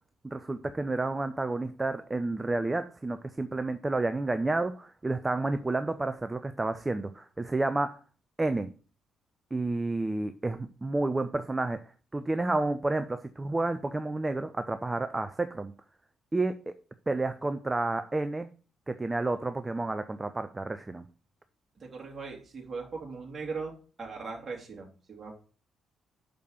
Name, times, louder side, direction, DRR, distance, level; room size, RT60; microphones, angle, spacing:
voice 1, 0.2-8.0 8.4-8.7 9.5-11.8 12.1-15.7 16.3-16.7 17.1-18.5 18.9-21.0, right 2 dB, 20° right, 10 dB, 0.6 m, -30 dB
voice 2, 21.8-23.7 24.0-25.3, right 4 dB, 35° right, -2 dB, 3.2 m, -39 dB
6.5 x 5.1 x 5.8 m, 0.38 s
figure-of-eight pair, 40°, 0 cm